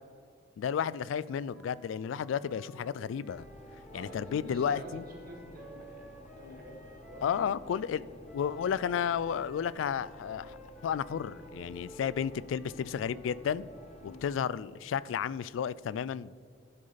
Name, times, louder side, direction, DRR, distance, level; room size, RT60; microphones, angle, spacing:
voice 1, 0.6-3.5 3.9-5.0 7.2-8.0 8.3-10.6 10.8-13.7 14.0-16.3, left 8 dB, 90° left, 20 dB, 0.3 m, -32 dB
Wind instrument woodwind instrument, 1.1-7.5 8.2-14.3, equal, 5° right, 1.1 m, -54 dB
sound 1, 3.3-14.4, left 1 dB, 35° left, 0.7 m, -53 dB
voice 2, 3.9-8.2 14.0-14.2, right 1 dB, 50° right, 1 dB, 1.9 m, -48 dB
12.0 x 6.3 x 4.0 m, 2.1 s
head